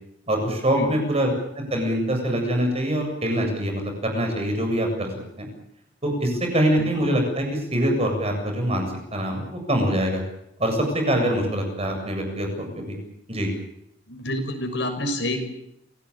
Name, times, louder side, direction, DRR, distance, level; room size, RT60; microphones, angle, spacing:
voice 1, 0.3-1.3 1.5-5.1 5.4-5.5 6.0-8.8 9.1-10.2 10.6-13.0 13.3-13.5, equal, 35° right, 3 dB, 7.7 m, -24 dB
voice 2, 6.8-7.1 11.2-11.3 14.1-15.4, left 1 dB, 70° left, 5 dB, 6.4 m, -29 dB
27.5 x 18.5 x 8.6 m, 0.78 s
head